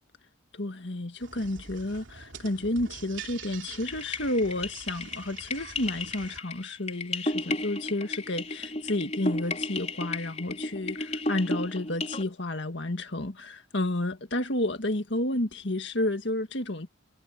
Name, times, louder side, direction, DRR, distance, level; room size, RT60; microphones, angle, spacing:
voice 1, 0.5-11.0 11.3-16.9, left 1 dB, 55° left, 1.9 m, -31 dB
sound 1, 1.2-6.4, right 5 dB, 65° right, 3.2 m, -45 dB
sound 2, 3.9-12.2, left 2 dB, 30° left, 5.1 m, -34 dB
head